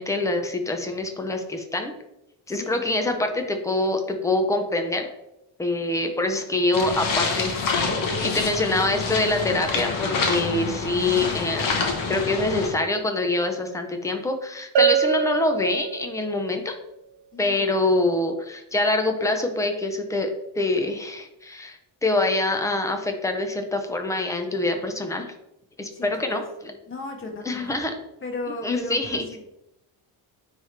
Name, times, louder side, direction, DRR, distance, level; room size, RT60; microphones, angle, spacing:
voice 1, 0.0-1.9 2.5-5.1 5.6-16.7 17.4-20.3 20.6-25.3 25.8-26.7 27.4-27.9 28.6-29.2, left 2 dB, 5° left, 5 dB, 0.5 m, -25 dB
sound 1, 6.7-12.7, left 4 dB, 45° left, 1.1 m, -27 dB
Bell, 14.8-16.4, right 8 dB, 70° right, 0.9 m, -23 dB
voice 2, 17.3-17.6 25.9-26.4 26.9-27.8 28.2-29.5, left 2 dB, 30° left, 1 dB, 1.2 m, -36 dB
9.2 x 3.2 x 3.3 m, 0.87 s
cardioid pair, 165°, 44 cm